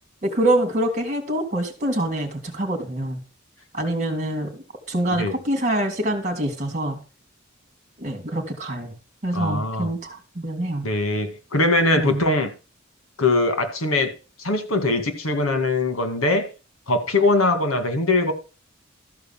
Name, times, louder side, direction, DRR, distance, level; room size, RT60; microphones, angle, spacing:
voice 1, 0.2-3.2 3.7-7.0 8.0-9.0 9.2-10.9 11.9-12.2, right 1 dB, 35° right, 3.1 m, -25 dB
voice 2, 9.3-9.9 10.8-12.5 13.2-14.1 14.4-16.5 16.9-18.3, left 2 dB, 80° left, 2.1 m, -21 dB
13.5 x 4.7 x 7.5 m
head